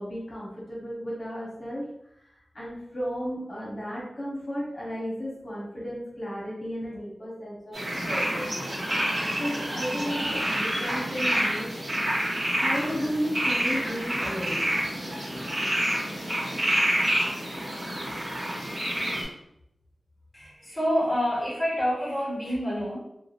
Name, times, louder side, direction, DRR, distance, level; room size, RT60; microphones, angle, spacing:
voice 1, 0.0-1.8 2.5-7.8 8.0-8.5 9.4-11.7 12.5-14.7, equal, 40° left, -6 dB, 0.8 m, -33 dB
sound 1, 7.7-19.2, equal, 55° right, 0.9 m, -28 dB
voice 2, 20.3-23.0, equal, 5° left, -7 dB, 1.2 m, -27 dB
2.9 x 2.1 x 2.4 m, 0.80 s
wide cardioid pair, 95°, 0 cm